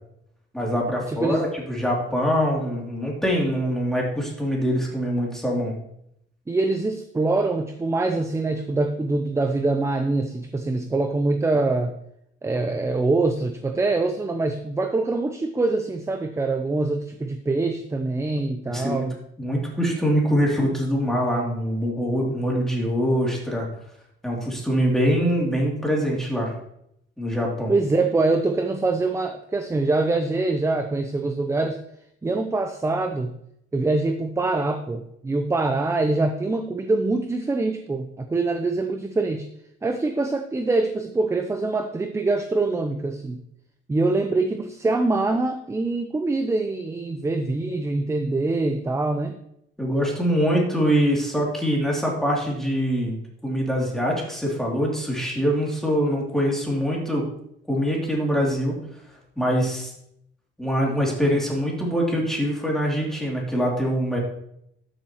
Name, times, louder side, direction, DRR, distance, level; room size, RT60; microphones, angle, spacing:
voice 1, 0.5-5.7 18.7-19.1 19.4-23.7 24.2-26.5 27.2-27.7 49.8-57.3 57.7-58.8 59.4-59.9 60.6-64.2, equal, ahead, -3 dB, 2.8 m, -24 dB
voice 2, 1.1-1.4 6.5-11.9 12.4-19.1 27.7-31.8 32.2-33.4 33.7-39.5 39.8-43.4 43.9-49.3, right 3 dB, 15° right, 7 dB, 0.5 m, -24 dB
12.5 x 6.9 x 3.0 m, 0.75 s
cardioid pair, 120°, 21 cm